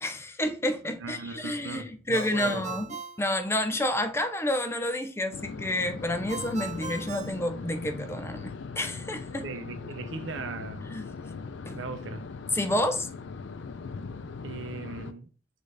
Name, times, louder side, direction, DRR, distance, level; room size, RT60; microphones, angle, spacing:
voice 1, 0.0-2.9 3.2-9.4 10.9-11.1 11.7-11.8 12.5-13.1, left 1 dB, 15° left, 0.4 m, -29 dB
voice 2, 1.0-2.7 9.4-10.9 11.8-12.3 14.4-15.3, right 4 dB, 85° right, 0.6 m, -38 dB
Ringtone, 2.1-4.1 6.3-8.2, right 5 dB, 40° right, 0.6 m, -40 dB
sound 1, 5.3-15.1, left 4 dB, 70° left, 0.4 m, -40 dB
6.0 x 2.6 x 3.3 m
head